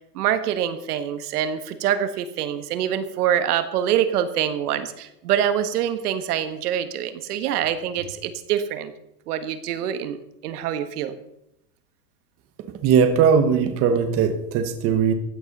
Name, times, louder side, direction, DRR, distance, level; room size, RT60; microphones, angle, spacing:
voice 1, 0.1-8.9 9.3-10.2 10.4-11.1, right 9 dB, 75° right, 10 dB, 1.7 m, -25 dB
voice 2, 12.8-15.1, right 7 dB, 30° right, 7 dB, 1.3 m, -19 dB
15.5 x 10.5 x 5.5 m, 0.82 s
supercardioid pair, 165°, 46 cm